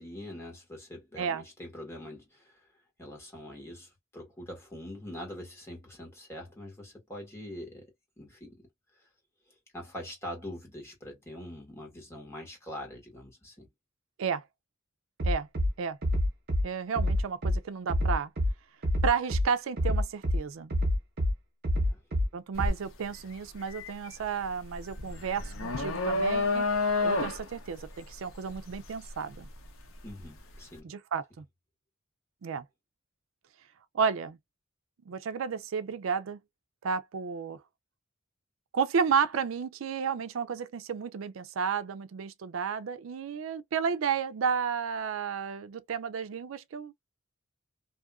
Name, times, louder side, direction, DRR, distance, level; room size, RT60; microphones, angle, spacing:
voice 1, 0.0-2.7 3.0-8.7 9.0-9.1 9.7-13.7 21.8-22.0 30.0-30.9, left 1 dB, 15° left, 1.4 m, -44 dB
Bass drum, 15.2-15.7 16.0-16.6 17.0-17.6 17.9-18.5 18.8-19.4 19.8-20.4 20.7-21.3 21.6-22.3 22.6-22.7, equal, 50° right, 0.8 m, -26 dB
voice 2, 16.6-18.3 19.0-20.7 22.3-26.7 27.0-29.5 30.8-31.4 32.4-32.6 33.9-34.4 35.1-36.4 36.8-37.6 38.7-46.9, right 6 dB, 75° right, 0.4 m, -32 dB
sound 1, 22.5-22.8 23.2-30.2, left 3 dB, 80° left, 0.7 m, -30 dB
2.7 x 2.4 x 2.2 m
head